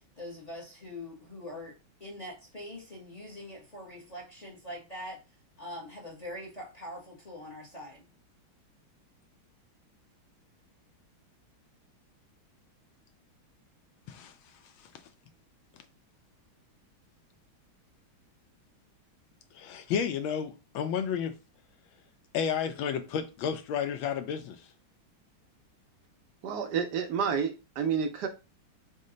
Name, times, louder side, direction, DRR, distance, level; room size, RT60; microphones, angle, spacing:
voice 1, 0.2-5.2 5.6-8.1, left 1 dB, 35° left, 0.7 m, -43 dB
voice 2, 19.5-21.4 22.3-24.7, left 7 dB, 75° left, 1.3 m, -32 dB
voice 3, 26.4-28.3, right 6 dB, 75° right, 0.9 m, -29 dB
5.2 x 2.2 x 3.8 m
omnidirectional pair, 2.3 m